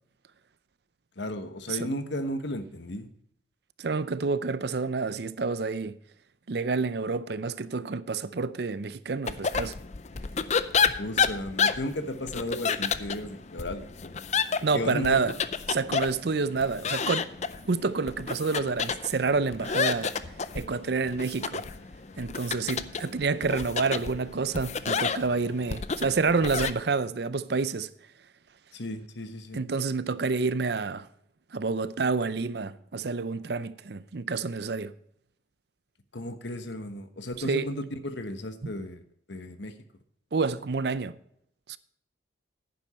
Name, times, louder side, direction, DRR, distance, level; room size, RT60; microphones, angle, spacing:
voice 1, 1.2-3.1 11.0-14.2 14.7-15.2 28.7-29.6 36.1-39.0 39.3-39.7, left 1 dB, 70° left, 1.2 m, -34 dB
voice 2, 3.8-6.0 6.5-9.7 14.6-15.3 15.7-17.3 17.7-20.1 20.5-21.6 22.2-27.9 29.5-31.1 31.5-34.9 37.4-37.7 40.3-41.1 41.7-41.8, right 4 dB, 60° right, 0.5 m, -28 dB
sound 1, 9.3-26.7, left 6 dB, 35° left, 0.5 m, -31 dB
11.0 x 9.8 x 4.3 m
head